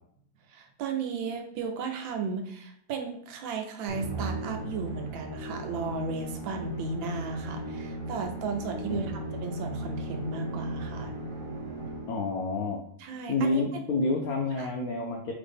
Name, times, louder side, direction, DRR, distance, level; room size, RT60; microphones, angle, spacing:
voice 1, 0.5-9.1 9.4-11.1 13.0-13.6 13.9-14.0 14.6-14.7, right 5 dB, 80° right, 4 dB, 1.4 m, -35 dB
Musical instrument, 3.9-12.4, right 1 dB, 30° right, 1.1 m, -36 dB
voice 2, 8.9-9.3 12.1-12.8 13.3-15.3, left 3 dB, 80° left, 1 dB, 0.8 m, -29 dB
3.9 x 3.4 x 3.4 m, 0.67 s
omnidirectional pair, 2.1 m